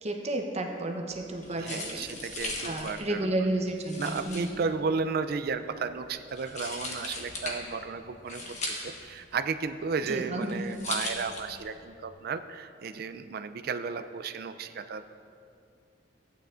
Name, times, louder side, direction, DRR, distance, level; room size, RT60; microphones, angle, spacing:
voice 1, 0.0-2.1 2.6-4.6 10.1-10.6, right 1 dB, 35° right, 2 dB, 0.8 m, -32 dB
sound 1, 1.1-11.9, left 2 dB, 40° left, 1.3 m, -39 dB
voice 2, 1.6-3.5 4.0-15.1, right 5 dB, 55° right, 10 dB, 0.4 m, -34 dB
14.5 x 9.1 x 2.5 m, 2.5 s
head